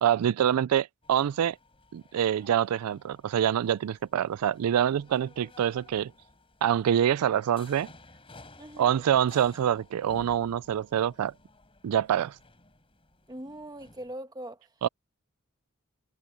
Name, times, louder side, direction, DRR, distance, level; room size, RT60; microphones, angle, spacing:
voice 1, 0.0-1.6 1.9-6.1 6.6-7.9 8.8-11.3 11.8-12.4 14.8-14.9, right 9 dB, 85° right, 0.3 m, -25 dB
sound 1, 1.0-14.1, left 2 dB, 25° left, 4.1 m, -55 dB
voice 2, 8.6-9.0 13.3-14.7, right 1 dB, 20° right, 1.4 m, -41 dB
head